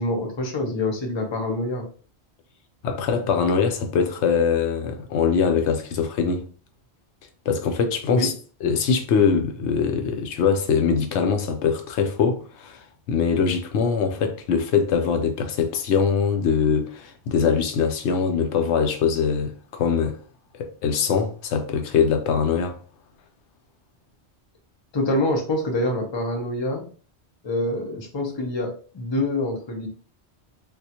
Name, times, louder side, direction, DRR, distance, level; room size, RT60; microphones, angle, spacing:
voice 1, 0.0-1.9 8.1-8.3 24.9-26.8 27.4-29.9, left 1 dB, 30° left, 0.7 m, -26 dB
voice 2, 2.8-6.5 7.5-8.3 8.6-20.2 20.6-22.7, left 6 dB, 80° left, 0.9 m, -22 dB
3.6 x 2.4 x 2.8 m
omnidirectional pair, 1.1 m